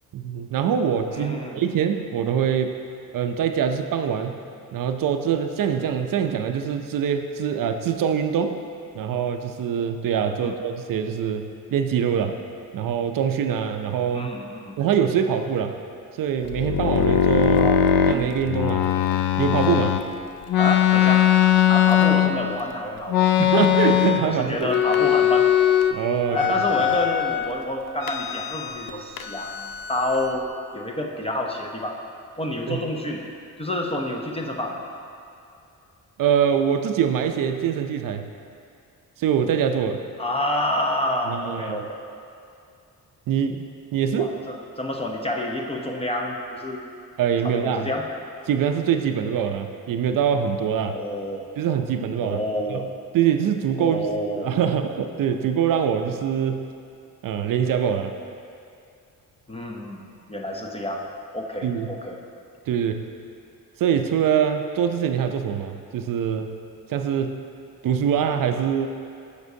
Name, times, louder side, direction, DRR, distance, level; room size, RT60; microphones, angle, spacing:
voice 1, 0.1-2.8 3.1-4.4 4.7-8.6 9.0-12.4 12.7-14.3 14.8-15.8 16.2-17.7 18.1-18.9 19.4-20.0 23.4-24.7 25.9-26.5 32.7-32.8 36.2-38.2 39.2-40.0 41.3-41.8 43.3-44.3 47.2-47.9 48.5-51.0 51.6-52.4 52.7-52.9 53.1-56.6 57.2-58.1 61.6-61.9 62.7-63.1 63.8-66.6 66.9-67.4 67.8-68.9, right 8 dB, 65° right, 7 dB, 0.5 m, -24 dB
voice 2, 1.1-1.6 10.4-10.6 14.1-14.8 17.5-17.8 20.6-21.3 21.7-23.2 24.2-25.5 26.3-32.0 32.4-33.2 33.6-34.8 40.2-42.0 44.2-44.3 44.8-46.8 47.4-48.0 50.9-51.4 52.2-52.9 53.8-54.5 59.5-60.0 60.3-61.0 61.3-62.2, left 1 dB, 15° left, 0 dB, 0.6 m, -28 dB
sound 1, 16.4-20.0 20.5-22.6 23.1-24.4 24.6-25.9 26.3-27.5 28.0-28.9 29.2-30.4, left 10 dB, 65° left, 0.5 m, -20 dB
9.4 x 6.7 x 2.7 m, 2.5 s
cardioid pair, 130°, 36 cm